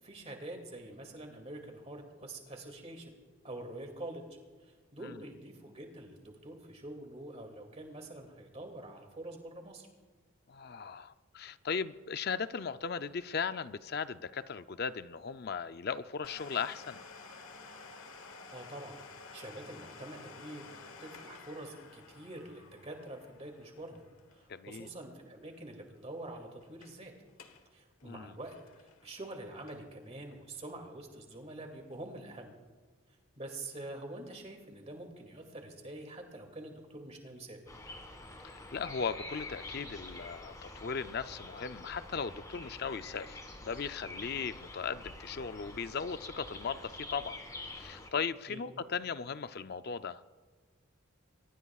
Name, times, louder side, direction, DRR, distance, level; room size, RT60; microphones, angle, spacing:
voice 1, 0.0-3.1 3.4-4.2 4.6-9.9 18.5-19.0 19.3-24.0 24.3-27.1 27.7-32.5 33.4-37.6 48.5-48.6, right 1 dB, 30° right, 2.4 m, -46 dB
voice 2, 10.5-17.0 24.5-24.9 28.0-28.4 38.4-47.4 47.7-50.2, left 6 dB, 45° left, 0.5 m, -37 dB
Domestic sounds home sounds, 16.2-25.7 25.9-26.0 26.6-27.0 27.3-27.7 28.0-30.1 30.5-30.6 31.3-31.4, left 4 dB, 75° left, 1.3 m, -52 dB
sound 1, 37.7-48.1, left 2 dB, 15° left, 1.8 m, -47 dB
23.5 x 21.0 x 2.4 m
head